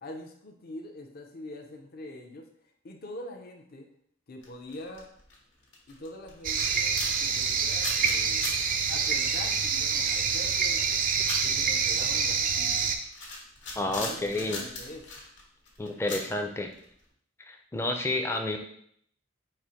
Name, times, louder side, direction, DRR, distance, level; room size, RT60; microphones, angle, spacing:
voice 1, 0.0-2.5 2.8-3.9 4.3-5.1 5.9-8.5 8.9-11.0 11.4-12.9 13.8-14.3 14.5-15.0, left 1 dB, 55° left, 3 dB, 0.7 m, -43 dB
sound 1, 4.4-5.4 5.6-17.0, left 3 dB, 70° left, 1.3 m, -41 dB
sound 2, 6.4-13.0, right 6 dB, 45° right, 0.4 m, -27 dB
voice 2, 13.8-14.6 15.8-16.7 17.4-18.6, left 2 dB, 15° left, 4 dB, 0.5 m, -30 dB
4.3 x 2.5 x 4.9 m, 0.65 s
head